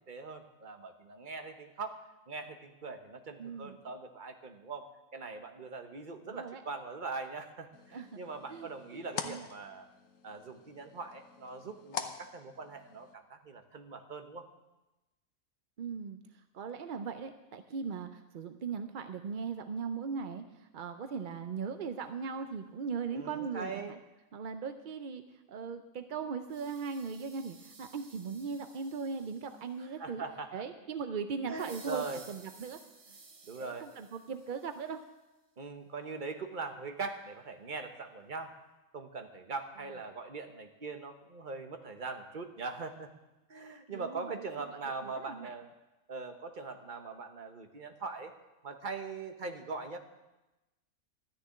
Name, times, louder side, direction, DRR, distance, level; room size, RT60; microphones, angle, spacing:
voice 1, 0.1-9.9 10.2-14.5 23.1-24.0 29.8-30.6 31.5-32.2 33.5-33.9 35.6-38.5 38.9-43.1 43.5-45.7 46.1-48.3 48.6-50.0, right 4 dB, 35° right, 6 dB, 1.1 m, -41 dB
voice 2, 3.4-3.8 6.3-6.6 7.9-8.2 8.5-9.5 15.8-16.2 16.5-23.9 24.3-25.2 25.5-30.2 30.5-32.8 33.6-35.0 43.9-44.3 44.7-45.5, right 5 dB, 55° right, 8 dB, 0.5 m, -39 dB
sound 1, 7.7-13.1, left 7 dB, 65° left, 1.2 m, -45 dB
sound 2, 26.5-29.8 31.6-35.1, right 4 dB, 70° right, 1.9 m, -56 dB
13.0 x 6.8 x 9.6 m, 1.0 s
omnidirectional pair, 1.5 m